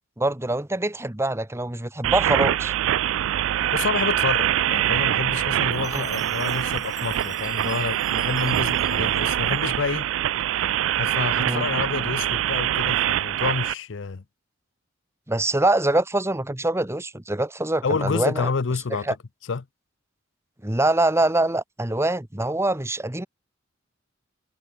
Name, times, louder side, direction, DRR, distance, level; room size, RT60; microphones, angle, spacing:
voice 1, 0.2-2.7 5.8-6.1 11.4-11.7 15.3-18.5 18.9-19.2 20.6-23.3, right 2 dB, 15° right, 1.2 m, -24 dB
sound 1, 2.0-13.7, right 11 dB, 90° right, 0.3 m, -24 dB
voice 2, 3.6-10.1 10.9-14.2 17.8-19.1 19.5-19.6, left 4 dB, 70° left, 0.6 m, -28 dB
Chime, 5.7-10.1, left 5 dB, 20° left, 3.7 m, -47 dB
head